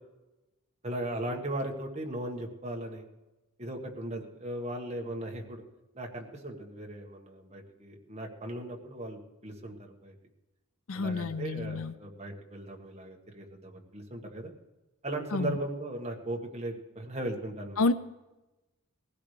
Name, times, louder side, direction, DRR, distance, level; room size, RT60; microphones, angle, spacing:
voice 1, 0.8-3.1 3.6-5.6 5.9-10.1 10.9-14.5 15.0-17.8, right 1 dB, 30° right, 1 dB, 1.6 m, -37 dB
voice 2, 10.9-11.9 15.3-15.6 17.8-17.9, left 3 dB, 70° left, 13 dB, 0.6 m, -29 dB
20.5 x 16.0 x 3.3 m, 1.0 s
head